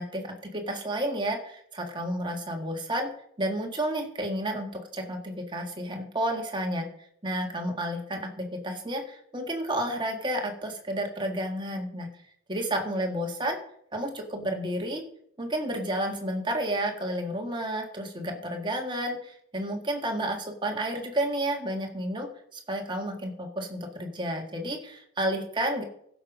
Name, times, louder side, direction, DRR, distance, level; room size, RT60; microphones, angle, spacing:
voice 1, 0.0-3.1 3.4-6.9 7.2-12.1 12.5-13.6 13.9-15.0 15.4-25.8, right 1 dB, 25° right, 2 dB, 1.8 m, -31 dB
16.0 x 6.9 x 5.0 m, 0.69 s
head